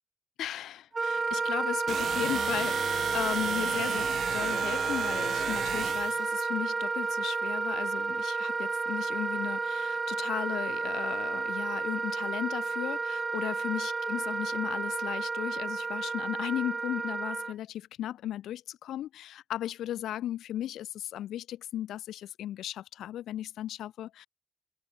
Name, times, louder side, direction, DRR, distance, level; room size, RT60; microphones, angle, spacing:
voice 1, 0.4-24.3, left 12 dB, 90° left, 3.1 m, -36 dB
Wind instrument woodwind instrument, 0.9-17.5, right 4 dB, 40° right, 3.2 m, -31 dB
sound 1, 1.9-6.3, right 9 dB, 80° right, 3.8 m, -35 dB
supercardioid pair, 50°, 0 cm